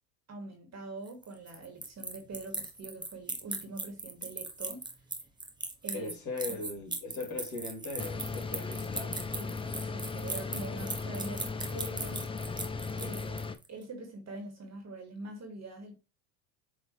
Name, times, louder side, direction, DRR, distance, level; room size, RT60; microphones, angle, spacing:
voice 1, 0.3-4.8 5.8-6.1 6.5-6.8 9.4-12.3 13.0-13.4 13.7-16.0, right 2 dB, 30° right, 2.7 m, -44 dB
sound 1, 1.1-13.7, right 2 dB, 10° right, 1.1 m, -38 dB
voice 2, 5.9-9.2 12.9-13.2, left 3 dB, 35° left, 3.9 m, -39 dB
sound 2, 8.0-13.6, left 4 dB, 10° left, 0.6 m, -37 dB
7.7 x 3.9 x 3.4 m
hypercardioid pair, 90°, 50 cm